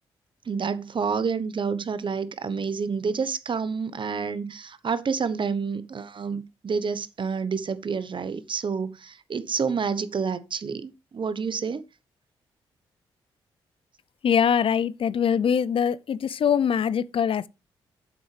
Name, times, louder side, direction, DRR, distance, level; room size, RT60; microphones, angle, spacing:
voice 1, 0.5-11.8, right 5 dB, 50° right, 1.0 m, -29 dB
voice 2, 14.2-17.5, left 7 dB, 55° left, 0.5 m, -23 dB
8.8 x 7.7 x 3.3 m
supercardioid pair, 50°, 11 cm